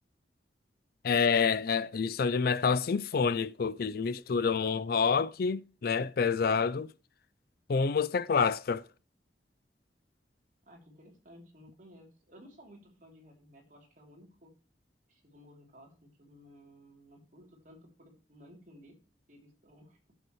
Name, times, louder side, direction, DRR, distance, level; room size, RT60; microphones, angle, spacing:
voice 1, 1.0-6.9 7.7-8.8, left 5 dB, 60° left, 0.4 m, -28 dB
voice 2, 10.6-14.5 15.1-19.0 19.3-20.0, equal, 45° right, 3.1 m, -56 dB
11.0 x 7.3 x 3.1 m
head